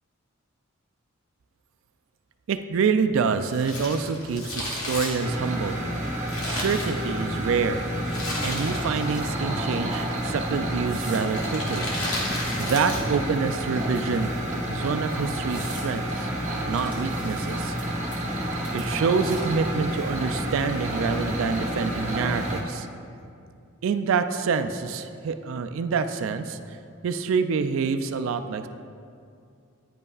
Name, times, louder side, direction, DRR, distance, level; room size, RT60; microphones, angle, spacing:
voice 1, 2.5-5.8 6.4-7.8 8.4-11.9 12.6-14.3 14.7-16.3 16.7-17.7 18.7-22.9 23.8-26.8 27.0-28.7, right 5 dB, 65° right, 9 dB, 0.3 m, -26 dB
Crumpling crinkling, 3.4-7.4 8.1-9.1 9.4-9.5 10.3-10.6 11.3-13.2 13.5-13.6, left 1 dB, 80° left, 1.4 m, -33 dB
sound 1, 5.2-22.6, right 1 dB, 35° right, 0.8 m, -29 dB
sound 2, 8.0-9.3 9.7-10.0 10.9-11.3 11.9-13.1 13.9-14.5 15.0-15.1 15.5-15.9 16.7-17.8 18.1-18.4 18.6-19.6, right 2 dB, 5° right, 1.5 m, -45 dB
9.5 x 5.3 x 2.4 m, 2.4 s
head